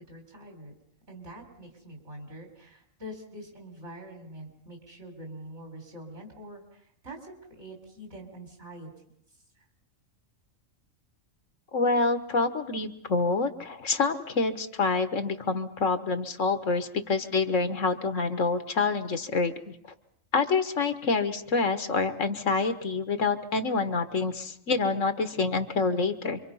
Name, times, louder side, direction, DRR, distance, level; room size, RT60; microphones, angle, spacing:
voice 1, 0.1-0.7 1.1-8.9, right 1 dB, 55° right, 2 dB, 4.9 m, -45 dB
voice 2, 11.7-19.7 20.3-26.4, left 4 dB, 65° left, 9 dB, 1.6 m, -27 dB
27.0 x 24.5 x 5.6 m, 0.73 s
omnidirectional pair, 1.4 m